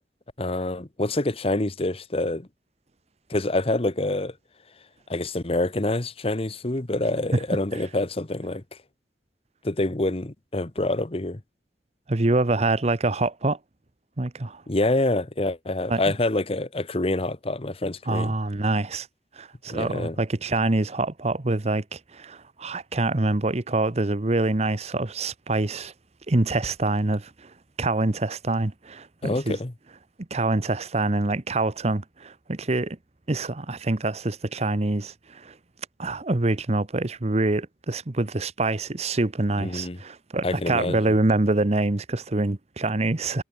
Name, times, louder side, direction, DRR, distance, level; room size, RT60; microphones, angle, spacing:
voice 1, 0.4-2.5 3.3-4.4 5.1-8.8 9.6-11.4 14.7-18.3 19.7-20.2 29.2-29.7 39.6-40.0 40.4-41.1, left 2 dB, 35° left, 1.2 m, -26 dB
voice 2, 12.1-13.6 14.2-14.6 15.9-16.0 18.1-19.1 19.4-25.9 26.3-27.5 27.8-29.6 30.3-33.0 33.3-35.5 36.0-43.4, right 2 dB, 40° right, 0.9 m, -25 dB
head